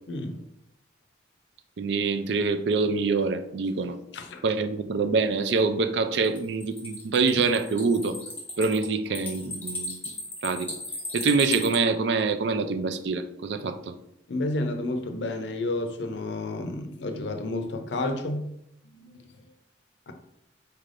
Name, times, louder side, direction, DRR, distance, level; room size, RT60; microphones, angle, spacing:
voice 1, 0.1-0.5 4.1-4.4 14.3-18.5 18.8-19.5 20.1-20.2, left 2 dB, 70° left, 0.5 m, -31 dB
voice 2, 1.8-4.0 4.4-8.2 8.6-10.0 10.4-10.7 11.1-13.9, right 4 dB, 70° right, 0.4 m, -25 dB
sound 1, 6.2-11.8, left 2 dB, 10° left, 1.0 m, -36 dB
4.4 x 3.3 x 2.5 m
head